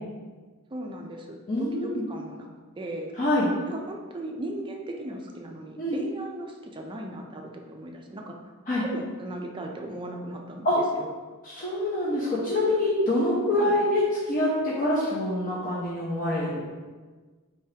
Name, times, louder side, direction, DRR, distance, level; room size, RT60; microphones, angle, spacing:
voice 1, 0.7-2.5 2.8-3.1 3.7-8.4 8.8-10.7 10.9-11.1 13.6-13.7, right 1 dB, 25° right, 2 dB, 0.4 m, -37 dB
voice 2, 1.5-2.0 3.2-3.5 5.8-6.0 8.7-8.8 10.6-10.8 11.4-16.6, left 1 dB, 40° left, -7 dB, 0.7 m, -25 dB
4.5 x 3.4 x 2.8 m, 1.4 s
head